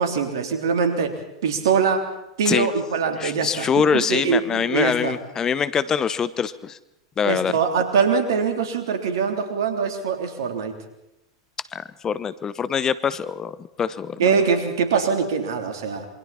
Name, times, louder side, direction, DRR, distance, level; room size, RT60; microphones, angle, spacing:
voice 1, 0.0-2.1 2.4-5.2 7.2-10.8 14.2-16.1, right 6 dB, 70° right, 5 dB, 3.4 m, -23 dB
voice 2, 3.2-6.8 7.2-7.5 11.7-14.4, left 7 dB, 25° left, 15 dB, 1.0 m, -24 dB
27.5 x 24.5 x 4.3 m, 0.89 s
hypercardioid pair, 95°, 2 cm